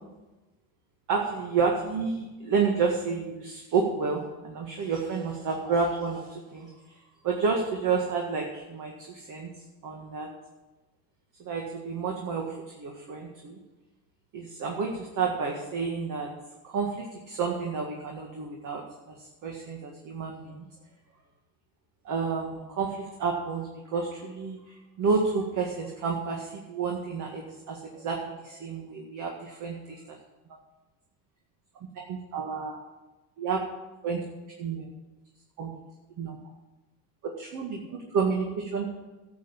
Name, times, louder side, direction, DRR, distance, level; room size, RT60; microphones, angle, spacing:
voice 1, 1.1-6.7 7.2-9.5 9.8-10.3 11.4-13.6 14.3-16.3 16.6-19.2 19.4-20.7 22.1-30.2 32.0-32.8 33.4-33.6 34.0-34.2 34.6-34.9 35.6-35.7 36.2-36.4 37.2-37.8 38.1-38.9, right 5 dB, 50° right, 1 dB, 2.0 m, -30 dB
12.5 x 7.8 x 7.3 m, 1.1 s
supercardioid pair, 115°, 41 cm